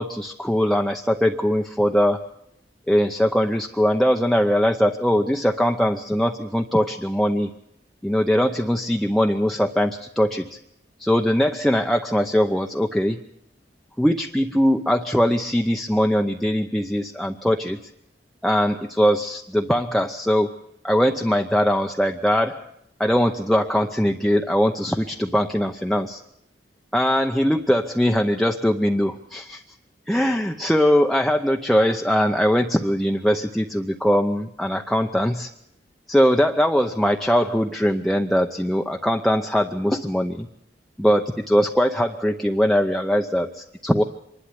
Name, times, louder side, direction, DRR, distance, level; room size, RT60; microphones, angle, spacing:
voice 1, 0.0-2.2 2.9-7.5 8.0-10.6 11.0-13.2 14.0-17.8 18.4-20.5 20.8-22.7 23.0-26.2 26.9-29.6 30.1-35.5 36.1-40.5 41.0-44.0, equal, ahead, 3 dB, 0.7 m, -21 dB
25.5 x 12.0 x 9.8 m, 0.78 s
head